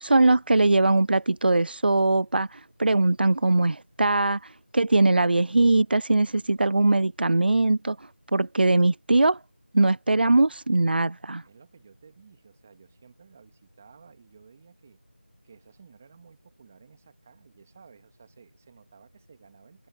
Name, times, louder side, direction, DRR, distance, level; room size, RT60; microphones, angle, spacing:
voice 1, 0.0-2.5 2.8-4.4 4.7-8.0 8.3-9.4 9.7-11.4, right 2 dB, 60° right, 0.3 m, -21 dB
voice 2, 11.4-15.0 15.4-19.9, right 6 dB, 10° right, 1.7 m, -55 dB
figure-of-eight pair, 175°, 6 cm